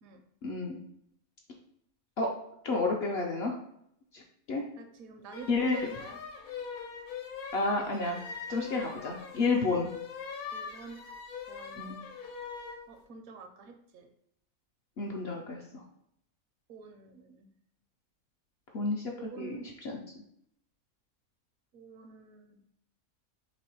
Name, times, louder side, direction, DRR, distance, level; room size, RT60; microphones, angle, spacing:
voice 1, 0.4-0.8 2.2-2.3 2.6-3.6 4.1-4.2 4.5-4.6 5.5-5.9 7.5-8.2 8.5-9.9 11.8-12.0 15.0-15.8 18.7-20.0, left 3 dB, 65° left, 0 dB, 0.7 m, -31 dB
voice 2, 4.8-6.2 10.5-11.0 11.5-11.9 12.9-14.1 16.7-17.5 19.2-19.7 21.7-22.6, right 5 dB, 75° right, 6 dB, 1.0 m, -47 dB
sound 1, 5.3-12.8, left 6 dB, 85° left, 1.2 m, -42 dB
3.2 x 3.1 x 4.3 m, 0.73 s
omnidirectional pair, 1.5 m